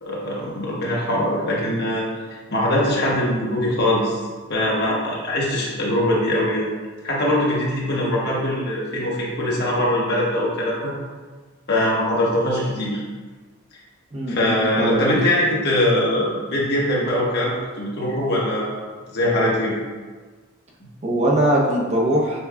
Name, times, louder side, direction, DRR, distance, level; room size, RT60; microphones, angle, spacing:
voice 1, 0.0-2.0 2.5-4.2 4.5-6.7 7.0-10.9 11.7-13.0 14.3-18.8 19.1-19.7, left 1 dB, 55° left, -4 dB, 0.9 m, -22 dB
voice 2, 14.1-15.1 21.0-22.4, right 1 dB, 30° right, -3 dB, 0.6 m, -21 dB
6.6 x 2.3 x 2.2 m, 1.4 s
head